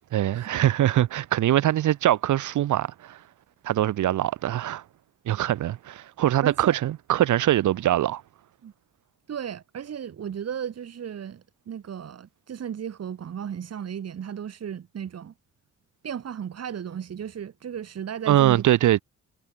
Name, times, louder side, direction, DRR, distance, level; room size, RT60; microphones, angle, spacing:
voice 1, 0.1-3.2 3.6-4.8 5.3-8.2 18.3-19.0, right 13 dB, 75° right, 3.6 m, -22 dB
voice 2, 6.4-6.8 8.6-8.7 9.3-15.3 16.0-18.6, right 8 dB, 55° right, 6.0 m, -35 dB
cardioid pair, 90°, 30 cm